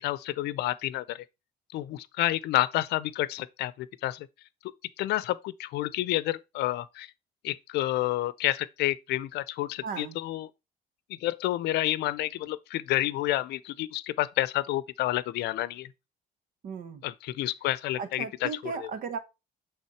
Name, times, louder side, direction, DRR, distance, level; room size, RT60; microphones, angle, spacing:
voice 1, 0.0-1.2 1.7-4.3 5.0-7.1 7.4-10.5 11.2-15.9 17.0-18.9, left 15 dB, 80° left, 0.6 m, -29 dB
voice 2, 9.8-10.2 16.6-17.0 18.0-19.2, right 6 dB, 55° right, 1.4 m, -36 dB
8.6 x 3.6 x 4.4 m
cardioid pair, 110°, 17 cm